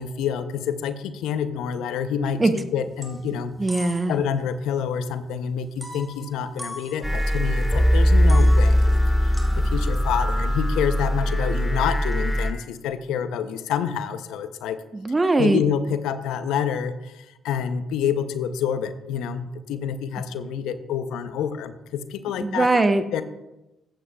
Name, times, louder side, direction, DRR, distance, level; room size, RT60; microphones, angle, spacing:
voice 1, 0.0-2.4 2.7-3.5 4.1-9.0 9.6-14.8 15.4-22.7 23.1-23.2, left 8 dB, 75° left, 11 dB, 0.6 m, -27 dB
sound 1, 2.5-2.6 2.9-4.3 4.6-4.7 5.8-7.6 8.0-12.4, equal, 10° right, 2.6 m, -42 dB
voice 2, 3.6-4.1 14.9-15.6 22.4-23.0, right 2 dB, 25° right, 9 dB, 0.9 m, -20 dB
sound 2, 7.0-12.5, equal, 5° left, 1.6 m, -20 dB
14.0 x 8.4 x 2.3 m, 0.98 s
supercardioid pair, 55°, 0 cm